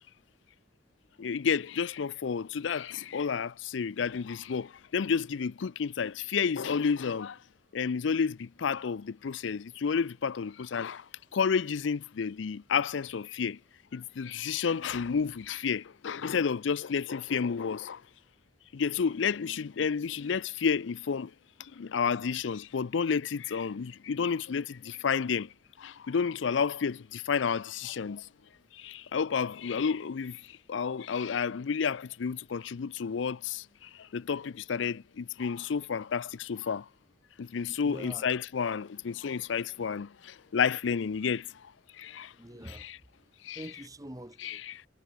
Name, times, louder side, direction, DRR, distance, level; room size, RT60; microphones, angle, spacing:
voice 1, 1.2-7.4 7.7-11.1 11.3-13.6 13.9-18.0 18.7-21.3 21.6-28.3 28.7-36.9 37.4-42.3 42.7-43.0 43.4-43.6 44.4-44.8, left 6 dB, 75° left, 0.5 m, -31 dB
voice 2, 37.8-38.3 42.3-42.9 43.5-44.6, right 1 dB, 20° right, 3.9 m, -44 dB
head